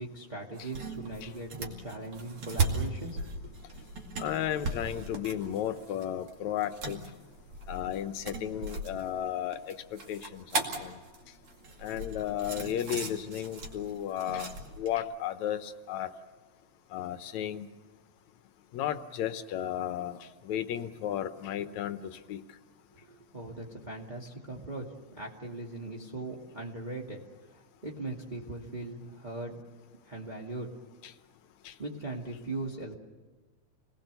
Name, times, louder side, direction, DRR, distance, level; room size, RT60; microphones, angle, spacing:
voice 1, 0.0-3.5 22.9-29.6 30.0-30.7 31.8-33.0, right 2 dB, 15° right, -2 dB, 1.9 m, -40 dB
sound 1, 0.6-14.9, right 3 dB, 50° right, 3.2 m, -37 dB
voice 2, 4.2-7.0 7.7-11.0 11.8-14.5 14.8-16.1 16.9-17.7 18.7-20.2 20.5-22.4 31.0-31.1 31.7-31.8, left 10 dB, 75° left, 11 dB, 2.2 m, -34 dB
30.0 x 19.5 x 6.8 m, 1.3 s
omnidirectional pair, 3.4 m